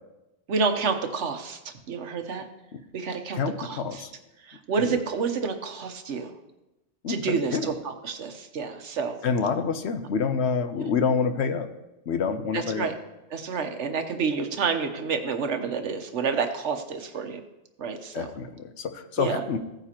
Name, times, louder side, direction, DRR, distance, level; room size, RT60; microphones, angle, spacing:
voice 1, 0.5-2.4 2.9-4.0 4.5-6.3 7.1-9.2 10.7-10.8 12.5-12.9 13.3-17.4 17.8-18.3 19.2-19.4, right 5 dB, 80° right, 7 dB, 1.3 m, -29 dB
voice 2, 3.3-4.1 4.8-5.0 7.0-7.7 9.2-11.7 12.1-12.9 18.1-19.6, left 5 dB, 70° left, 9 dB, 1.0 m, -27 dB
16.0 x 9.3 x 2.9 m, 0.96 s
omnidirectional pair, 1.2 m